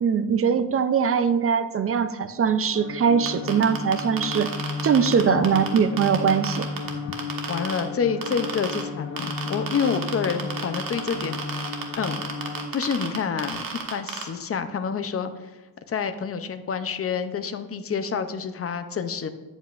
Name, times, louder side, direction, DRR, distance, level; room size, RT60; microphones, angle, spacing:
voice 1, 0.0-4.5 4.8-6.7, right 6 dB, 35° right, 12 dB, 0.4 m, -22 dB
sound 1, 2.7-12.7, left 4 dB, 85° left, 1.5 m, -34 dB
sound 2, 3.3-7.8 8.2-8.8 9.2-14.2, right 6 dB, 50° right, 1.4 m, -31 dB
voice 2, 5.3-5.7 6.9-7.0 7.5-11.6 12.0-12.2 12.7-13.6 13.9-15.6 15.9-19.3, left 6 dB, 30° left, 10 dB, 0.6 m, -28 dB
9.2 x 8.0 x 2.4 m, 1.2 s
cardioid pair, 130°, 44 cm